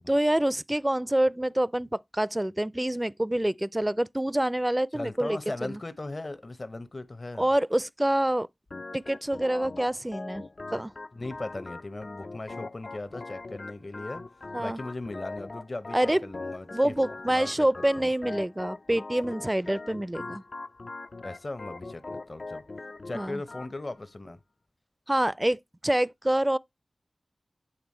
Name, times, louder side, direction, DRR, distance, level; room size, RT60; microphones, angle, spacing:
voice 1, 0.0-5.8 7.4-8.5 8.9-10.5 10.7-10.9 14.5-14.8 15.9-16.3 16.7-20.4 23.1-23.4 25.1-26.6, right 1 dB, 20° right, 0.3 m, -26 dB
voice 2, 4.9-7.5 11.1-14.2 14.6-17.7 18.0-18.1 21.2-22.6 23.1-24.4, left 2 dB, 50° left, 0.7 m, -38 dB
Organ, 8.7-23.7, left 3 dB, 65° left, 0.3 m, -41 dB
8.0 x 3.4 x 4.3 m
cardioid pair, 40°, 0 cm